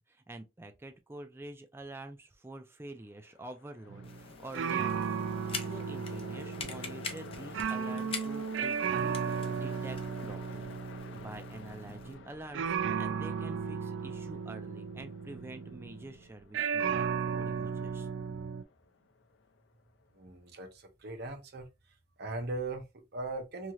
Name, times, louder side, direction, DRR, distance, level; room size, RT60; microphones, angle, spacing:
voice 1, 0.1-10.0 10.3-10.8 11.1-17.1 17.3-18.1, right 1 dB, 15° right, 0.4 m, -47 dB
Train, 3.0-20.2, left 5 dB, 80° left, 0.4 m, -52 dB
sound 1, 3.9-4.2 4.5-16.1 16.5-18.6, right 6 dB, 85° right, 0.3 m, -35 dB
sound 2, 4.0-12.1, left 5 dB, 30° left, 0.6 m, -45 dB
voice 2, 20.1-21.7 22.2-23.7, right 2 dB, 60° right, 0.7 m, -39 dB
3.1 x 2.8 x 2.3 m
head